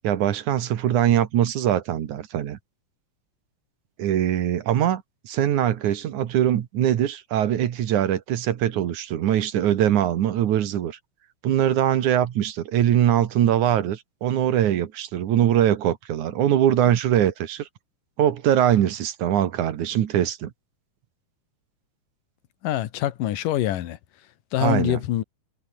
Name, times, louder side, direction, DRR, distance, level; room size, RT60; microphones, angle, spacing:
voice 1, 0.0-2.6 4.0-11.0 11.4-17.7 18.2-20.5 24.6-25.0, right 11 dB, 70° right, 2.8 m, -22 dB
voice 2, 22.6-24.0 24.5-25.2, left 13 dB, 90° left, 2.9 m, -24 dB
omnidirectional pair, 3.7 m